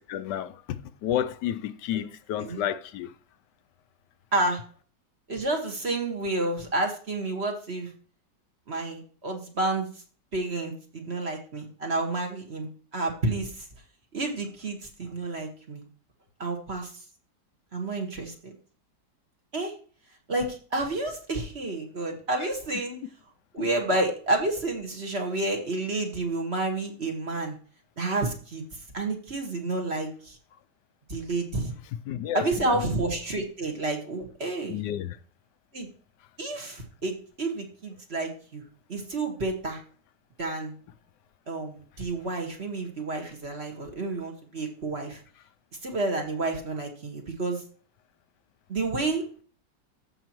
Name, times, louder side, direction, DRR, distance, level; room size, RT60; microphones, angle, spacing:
voice 1, 0.0-3.1 22.4-22.5 23.6-23.7 32.1-32.8 34.7-35.2, left 11 dB, 80° left, 1.2 m, -31 dB
voice 2, 4.3-4.6 5.3-7.9 8.7-9.9 10.3-13.7 14.1-15.8 16.4-16.9 17.7-18.5 19.5-19.7 20.3-23.0 23.5-27.6 28.0-28.6 28.9-30.4 31.1-31.7 32.3-34.8 35.7-35.9 36.4-38.6 38.9-39.8 40.4-40.7 41.5-45.2 45.8-47.6 48.7-49.2, right 2 dB, 40° right, 1.8 m, -30 dB
14.5 x 5.9 x 3.0 m
omnidirectional pair, 1.8 m